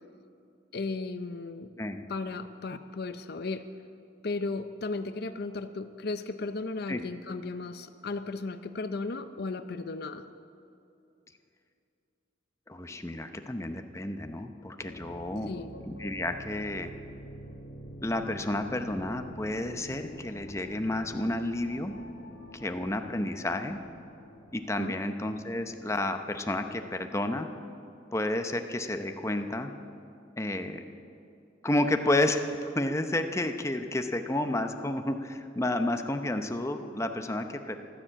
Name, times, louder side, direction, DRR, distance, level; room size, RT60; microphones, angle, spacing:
voice 1, 0.7-1.7 2.1-3.7 4.2-10.3 15.5-15.7 24.8-25.0, left 3 dB, 55° left, 10 dB, 0.6 m, -35 dB
voice 2, 12.7-15.5 15.9-16.9 18.0-21.9 22.5-23.8 24.5-27.5 28.1-29.7 30.4-30.8 31.6-37.8, left 1 dB, 15° left, 6 dB, 0.7 m, -31 dB
sound 1, 14.8-27.5, equal, 70° left, 2.2 m, -47 dB
14.5 x 12.5 x 7.5 m, 2.6 s
head